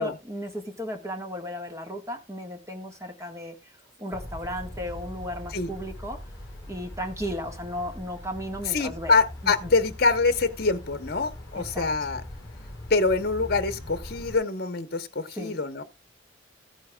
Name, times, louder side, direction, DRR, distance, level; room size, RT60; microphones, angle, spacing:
voice 1, 0.0-6.2 6.7-9.7 11.5-11.9 15.3-15.5, equal, 15° right, 1.6 m, -35 dB
sound 1, 4.1-14.4, left 1 dB, 20° left, 3.3 m, -41 dB
voice 2, 8.7-12.2 12.9-15.8, left 3 dB, 55° left, 1.0 m, -25 dB
14.5 x 9.4 x 2.3 m
head